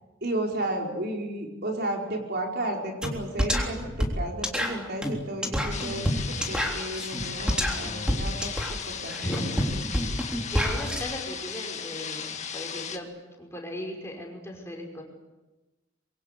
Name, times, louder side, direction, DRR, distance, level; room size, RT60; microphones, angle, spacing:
voice 1, 0.2-8.5 8.9-9.7, right 1 dB, 55° right, 1 dB, 4.6 m, -33 dB
sound 1, 3.0-3.1 3.4-11.0, equal, 5° right, 3.6 m, -28 dB
sound 2, 5.7-13.0, left 7 dB, 35° left, 1.9 m, -36 dB
voice 2, 10.5-13.1 13.4-15.0, equal, 15° left, 2 dB, 5.5 m, -36 dB
25.5 x 23.5 x 8.3 m, 1.1 s
head